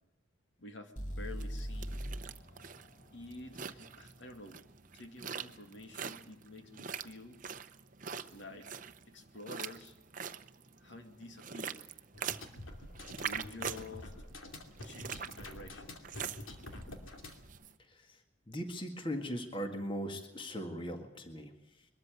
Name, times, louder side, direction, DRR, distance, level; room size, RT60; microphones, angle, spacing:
voice 1, 0.6-2.0 3.1-4.6 4.9-7.4 8.3-8.7 9.1-10.0 10.8-11.8 13.1-14.1 14.7-16.0, left 2 dB, 70° left, 5 dB, 2.4 m, -49 dB
sound 1, 1.0-4.9, equal, 40° left, 2.6 m, -43 dB
sound 2, 1.4-17.7, right 7 dB, 40° right, 0.8 m, -44 dB
sound 3, 12.1-17.5, left 1 dB, 90° left, 2.7 m, -48 dB
voice 2, 17.8-18.2 18.5-21.9, equal, 25° left, 5 dB, 1.9 m, -40 dB
22.5 x 13.5 x 9.2 m, 0.96 s
head